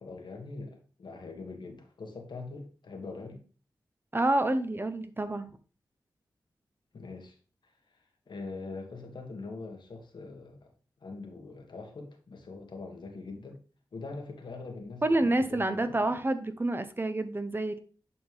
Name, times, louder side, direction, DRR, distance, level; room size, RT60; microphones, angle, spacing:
voice 1, 0.0-3.4 6.9-7.4 8.3-10.7 11.0-13.6 13.9-16.1, left 3 dB, 70° left, 3 dB, 1.8 m, -43 dB
voice 2, 4.1-5.5 15.0-17.8, right 2 dB, 25° right, 10 dB, 0.8 m, -28 dB
10.0 x 4.4 x 3.5 m, 0.39 s
cardioid pair, 55°, 8 cm